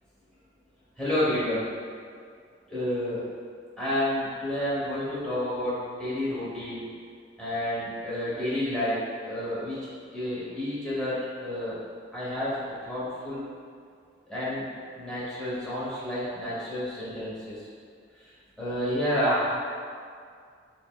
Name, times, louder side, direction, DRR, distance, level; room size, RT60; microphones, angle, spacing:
voice 1, 1.0-1.7 2.7-3.2 3.8-6.8 7.4-8.9 9.2-9.8 10.1-11.8 12.1-12.6 12.9-13.4 14.3-14.6 14.9-17.7 18.6-19.6, left 1 dB, 5° left, -11 dB, 1.0 m, -29 dB
4.9 x 2.1 x 2.3 m, 2.1 s
head